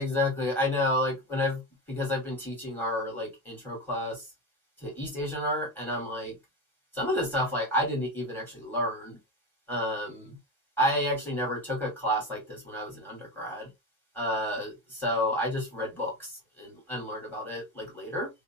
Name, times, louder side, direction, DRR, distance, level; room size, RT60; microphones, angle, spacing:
voice 1, 0.0-1.6 1.9-4.3 4.8-6.3 6.9-9.2 9.7-10.4 10.8-13.7 14.1-18.3, left 1 dB, 5° left, 1.5 m, -30 dB
2.8 x 2.0 x 2.7 m
cardioid pair, 150°, 37 cm